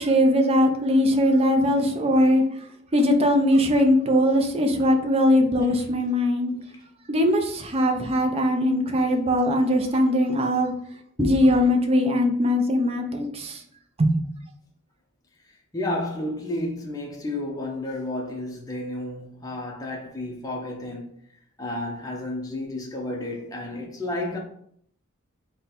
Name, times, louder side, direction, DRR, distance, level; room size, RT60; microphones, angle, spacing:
voice 1, 0.0-2.4 2.9-6.6 7.1-10.7 11.2-13.6 14.0-14.2, equal, 30° right, 0.5 m, -20 dB
voice 2, 15.7-21.1 21.6-24.4, left 1 dB, 15° left, 0.6 m, -31 dB
3.7 x 2.2 x 4.2 m
head